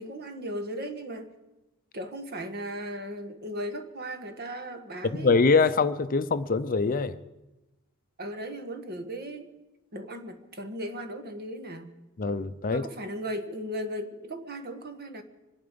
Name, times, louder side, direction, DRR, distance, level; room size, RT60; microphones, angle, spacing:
voice 1, 0.0-1.3 1.9-5.3 8.2-9.5 9.9-11.9 12.7-15.2, equal, 50° right, 8 dB, 1.4 m, -37 dB
voice 2, 5.1-7.2 12.2-12.9, left 4 dB, 40° left, 12 dB, 0.6 m, -24 dB
25.0 x 10.5 x 5.2 m, 1.0 s
head